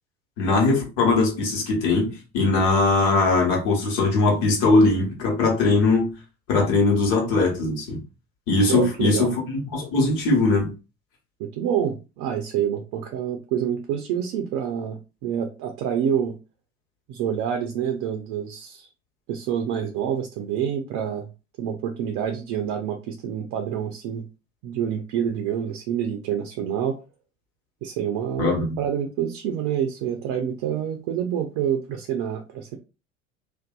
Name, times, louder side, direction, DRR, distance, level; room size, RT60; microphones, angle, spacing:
voice 1, 0.4-6.1 6.5-8.0 8.5-10.7 28.4-28.7, left 3 dB, 65° left, 1.2 m, -20 dB
voice 2, 8.7-9.3 11.4-16.3 17.1-18.9 19.3-21.3 21.6-24.2 24.6-27.0 27.8-32.8, right 9 dB, 50° right, 0.5 m, -27 dB
2.6 x 2.3 x 2.3 m
figure-of-eight pair, 65°, 41 cm